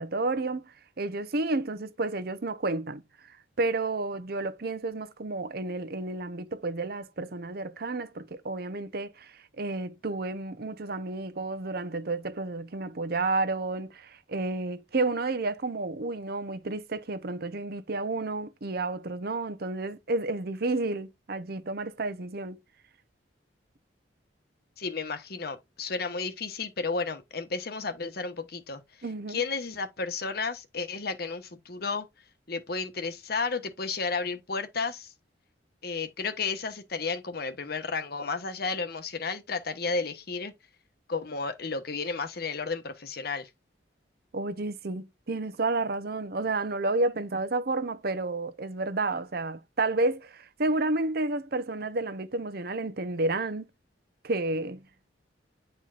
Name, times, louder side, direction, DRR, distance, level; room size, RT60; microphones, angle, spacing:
voice 1, 0.0-3.0 3.3-22.6 29.0-29.4 44.3-53.7 54.2-54.8, right 2 dB, 55° right, 0.8 m, -31 dB
voice 2, 24.8-28.8 29.3-32.1 32.5-35.1 35.8-40.5 41.1-43.5, left 4 dB, 55° left, 1.2 m, -32 dB
10.0 x 4.5 x 2.5 m
head